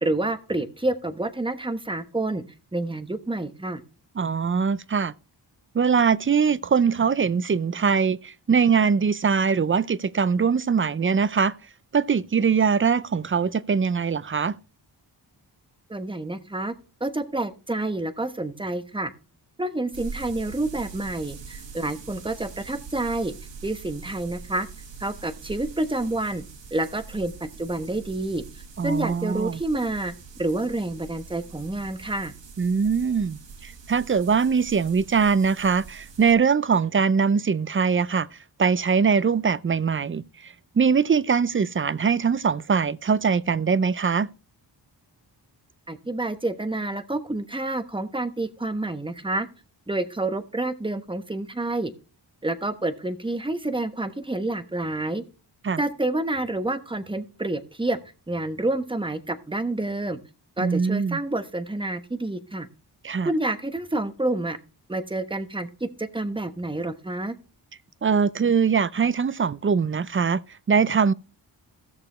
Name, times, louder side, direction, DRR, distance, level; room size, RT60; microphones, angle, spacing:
voice 1, 0.0-2.4 2.7-3.8 15.9-16.7 17.0-19.1 19.6-23.3 23.6-24.7 25.0-26.4 26.7-28.4 28.8-30.1 30.4-32.3 45.9-49.5 49.9-51.9 52.4-55.2 55.8-58.0 58.3-60.2 60.6-62.7 63.2-64.6 64.9-67.4, right 2 dB, 10° right, 1.1 m, -28 dB
voice 2, 4.2-5.1 5.7-11.6 11.9-14.6 28.8-29.6 32.6-38.3 38.6-44.3 55.6-55.8 60.6-61.2 63.0-63.3 68.0-70.4 70.7-71.1, right 6 dB, 30° right, 0.4 m, -22 dB
sound 1, 19.9-36.3, right 5 dB, 75° right, 1.7 m, -43 dB
16.0 x 6.8 x 3.1 m
wide cardioid pair, 80°, 44 cm